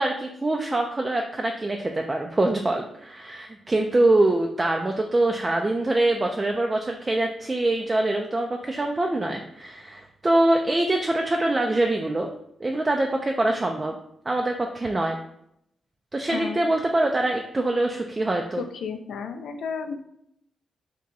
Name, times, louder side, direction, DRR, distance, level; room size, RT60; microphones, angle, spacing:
voice 1, 0.0-12.3 12.6-14.0 14.3-15.2 16.1-18.6, right 2 dB, 30° right, 2 dB, 0.3 m, -24 dB
voice 2, 16.3-16.7 18.6-20.1, left 6 dB, 80° left, 8 dB, 0.3 m, -33 dB
2.7 x 2.2 x 3.8 m, 0.75 s
supercardioid pair, 55°, 0 cm